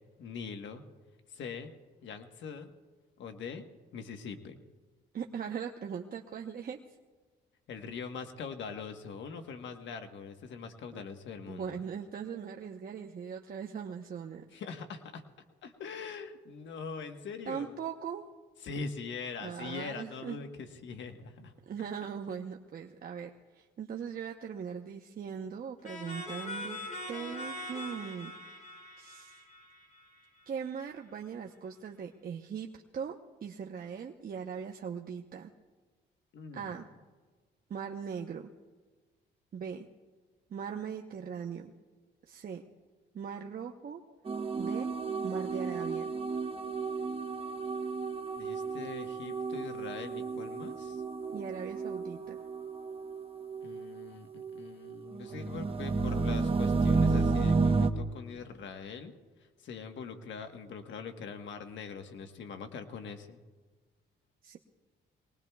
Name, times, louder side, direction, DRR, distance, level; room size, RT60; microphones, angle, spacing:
voice 1, 0.2-0.8 1.3-1.7 2.0-2.7 3.2-3.6 3.9-4.6 7.7-11.8 14.5-15.2 15.6-17.7 18.6-21.5 36.3-36.8 48.4-51.0 53.6-59.1 59.6-63.4, left 5 dB, 70° left, 6 dB, 1.3 m, -42 dB
voice 2, 5.1-6.8 10.9-11.0 11.5-14.4 17.5-18.2 19.4-20.4 21.7-26.8 27.1-28.3 29.0-29.4 30.5-33.1 33.4-35.5 36.5-36.8 37.7-38.5 39.5-39.9 40.5-41.7 42.3-42.6 43.1-44.0 44.6-44.9 45.2-46.1 51.3-52.4 64.4-64.6, right 7 dB, 45° right, 1 dB, 0.9 m, -40 dB
sound 1, 25.8-30.4, left 1 dB, 40° left, 5.3 m, -42 dB
sound 2, 44.3-54.1 54.3-57.9, right 4 dB, 30° right, 1.0 m, -32 dB
23.5 x 19.0 x 2.3 m, 1.4 s
cardioid pair, 90°, 20 cm